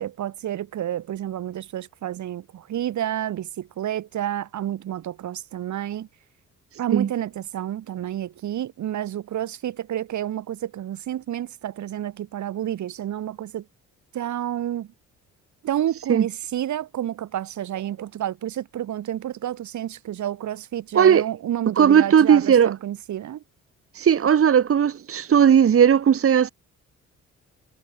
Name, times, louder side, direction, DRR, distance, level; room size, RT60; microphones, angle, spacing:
voice 1, 0.0-6.1 6.8-13.7 14.1-14.9 15.6-23.4, right 11 dB, 70° right, 4.4 m, -30 dB
voice 2, 21.8-22.7 23.9-26.5, right 8 dB, 50° right, 1.7 m, -17 dB
cardioid pair, 90°, 30 cm